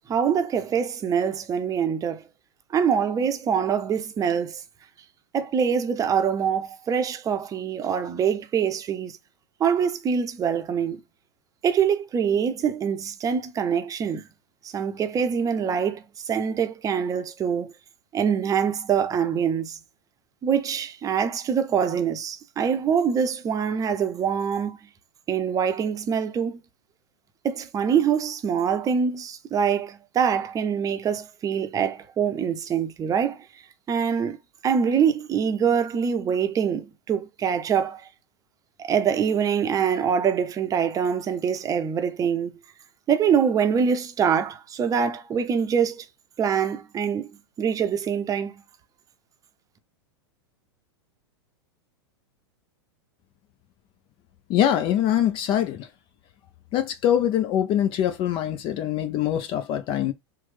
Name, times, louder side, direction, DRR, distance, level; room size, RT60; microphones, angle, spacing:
voice 1, 0.1-2.2 2.7-4.6 5.3-9.1 9.6-11.0 11.6-14.2 14.6-17.7 18.1-19.8 20.4-24.8 25.3-26.6 27.4-33.4 33.9-34.4 34.6-38.0 38.8-42.5 43.1-46.0 46.4-47.3 47.6-48.6, right 7 dB, 25° right, 0.6 m, -24 dB
voice 2, 54.5-55.9 56.7-60.1, left 10 dB, 40° left, 0.5 m, -23 dB
3.1 x 2.1 x 3.2 m
hypercardioid pair, 115°, 14 cm